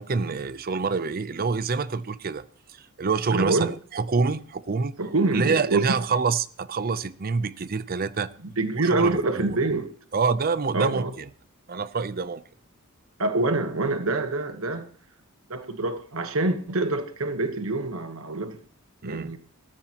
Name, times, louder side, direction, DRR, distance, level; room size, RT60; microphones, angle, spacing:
voice 1, 0.0-2.4 2.7-4.9 5.3-8.3 8.8-9.6 10.1-11.0 11.7-12.4 19.0-19.3, right 4 dB, 45° right, 0.6 m, -26 dB
voice 2, 3.3-3.7 5.0-6.0 8.4-9.9 10.7-11.1 13.2-14.9 15.5-18.6 19.0-19.4, right 2 dB, 75° right, 1.2 m, -26 dB
20.0 x 13.5 x 3.0 m
head